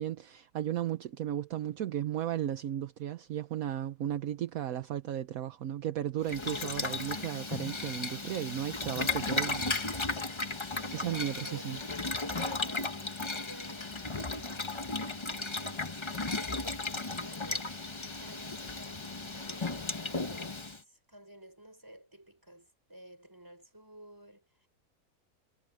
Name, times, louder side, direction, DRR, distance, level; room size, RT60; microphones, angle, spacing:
voice 1, 0.0-10.3 10.9-11.8, right 11 dB, 65° right, 1.2 m, -35 dB
Boiling, 6.2-20.8, left 3 dB, 20° left, 0.9 m, -35 dB
voice 2, 10.6-24.7, right 1 dB, 15° right, 6.0 m, -53 dB
omnidirectional pair, 1.7 m